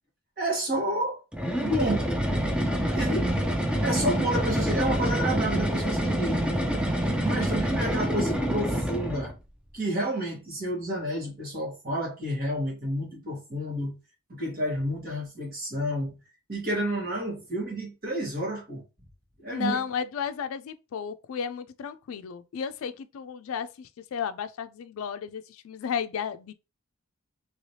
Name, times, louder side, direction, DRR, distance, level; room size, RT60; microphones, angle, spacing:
voice 1, 0.4-1.2 1.6-2.1 2.8-3.3 3.8-6.4 7.2-9.3 9.7-14.0 14.3-16.1 16.5-18.8 19.4-19.8, right 1 dB, 45° right, 1.5 m, -30 dB
sound 1, 1.3-9.4, equal, 5° right, 0.4 m, -27 dB
voice 2, 3.1-3.4 3.8-4.2 7.4-7.8 19.5-26.5, left 7 dB, 75° left, 0.3 m, -34 dB
3.2 x 2.9 x 2.8 m
head